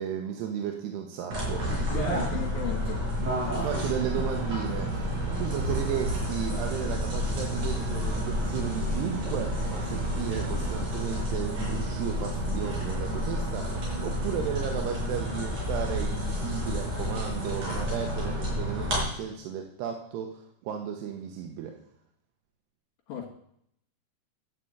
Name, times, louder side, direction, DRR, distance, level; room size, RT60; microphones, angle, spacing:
voice 1, 0.0-1.9 3.5-5.1 5.4-21.8, right 8 dB, 85° right, 3 dB, 3.1 m, -34 dB
sound 1, 1.3-19.0, equal, 45° right, 6.0 m, -30 dB
voice 2, 1.9-3.1 23.1-23.3, left 6 dB, 75° left, -3 dB, 3.8 m, -35 dB
sound 2, 3.2-10.9, right 3 dB, 65° right, 3.6 m, -41 dB
11.5 x 5.9 x 7.9 m, 0.70 s
omnidirectional pair, 4.7 m